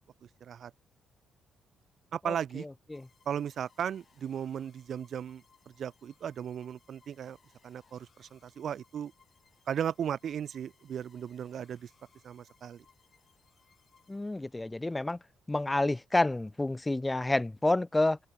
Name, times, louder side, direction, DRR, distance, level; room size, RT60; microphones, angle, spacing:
voice 1, 0.4-0.7 2.1-2.7 3.3-7.4 7.6-9.1 9.7-11.9 12.2-12.8, right 8 dB, 60° right, 0.4 m, -36 dB
sound 1, 2.9-14.7, left 5 dB, 40° left, 4.2 m, -67 dB
voice 2, 14.1-15.2 15.5-18.2, left 2 dB, 15° left, 0.4 m, -29 dB
open air
cardioid pair, 90°, 0 cm